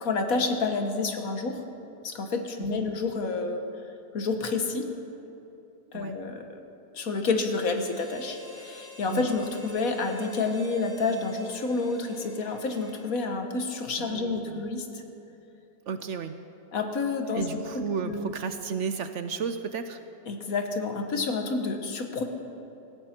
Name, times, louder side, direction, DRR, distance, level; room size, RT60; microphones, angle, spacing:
voice 1, 0.0-1.6 2.0-3.6 4.1-4.9 5.9-6.4 6.9-14.9 16.7-18.3 20.3-22.2, left 3 dB, 70° left, 5 dB, 1.7 m, -29 dB
Harmonica, 7.7-13.3, left 1 dB, 25° right, 1.9 m, -48 dB
voice 2, 14.0-14.7 15.9-16.4 17.3-20.0, right 6 dB, 60° right, 9 dB, 0.9 m, -33 dB
18.5 x 16.0 x 4.4 m, 2.9 s
omnidirectional pair, 1.6 m